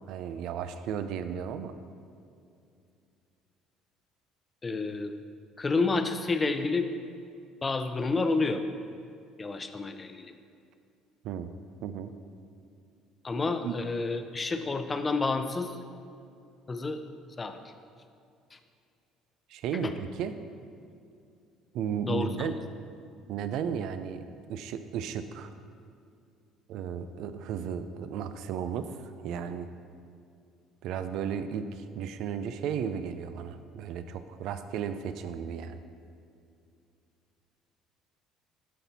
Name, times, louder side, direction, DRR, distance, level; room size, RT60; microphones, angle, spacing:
voice 1, 0.0-1.7 11.2-11.5 11.8-12.1 13.6-13.8 19.5-20.4 21.7-22.5 23.3-25.5 26.7-29.7 30.8-35.8, right 7 dB, 70° right, 10 dB, 0.5 m, -34 dB
voice 2, 4.6-5.1 5.6-6.9 7.6-8.6 9.4-10.3 13.2-15.8 16.7-17.0 17.4-17.6 18.5-18.6 19.8-19.9 22.0-22.5, left 3 dB, 25° left, 8 dB, 0.7 m, -29 dB
12.5 x 4.3 x 4.2 m, 2.5 s
supercardioid pair, 75°, 0 cm